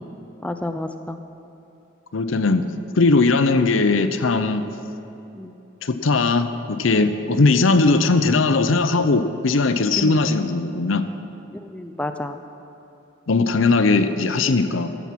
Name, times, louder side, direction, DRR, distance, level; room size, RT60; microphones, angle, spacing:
voice 1, 0.4-1.2 5.4-5.5 10.0-10.2 11.5-12.4, left 1 dB, 5° left, 7 dB, 0.4 m, -30 dB
voice 2, 2.1-2.6 3.0-4.6 5.8-11.1 13.3-14.9, left 3 dB, 90° left, 10 dB, 0.7 m, -19 dB
15.5 x 7.1 x 5.9 m, 3.0 s
head